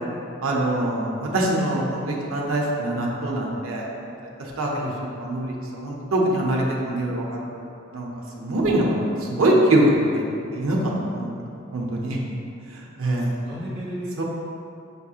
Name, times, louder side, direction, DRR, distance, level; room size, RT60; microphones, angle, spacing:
voice 1, 0.4-4.1 4.4-4.7 5.2-7.4 7.9-8.1 8.4-9.0 9.2-10.2 10.5-11.3 11.7-12.2 12.7-13.3 14.2-14.3, right 1 dB, 90° right, -2 dB, 0.6 m, -23 dB
voice 2, 13.0-14.2, equal, 50° right, -7 dB, 1.2 m, -34 dB
6.7 x 2.7 x 2.4 m, 2.6 s
head